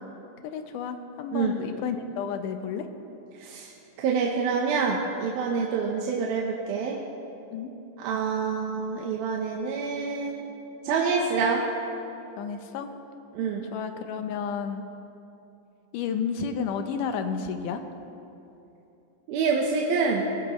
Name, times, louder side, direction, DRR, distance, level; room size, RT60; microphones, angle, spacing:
voice 1, 0.4-2.9 7.5-7.7 12.4-12.9 13.7-14.8 15.9-17.8, left 6 dB, 75° left, 7 dB, 2.2 m, -31 dB
voice 2, 3.4-3.7 4.0-7.0 8.0-10.5 10.8-11.6 13.3-13.7 19.3-20.3, right 5 dB, 90° right, -1 dB, 2.8 m, -27 dB
21.5 x 15.0 x 3.1 m, 2.9 s
omnidirectional pair, 4.1 m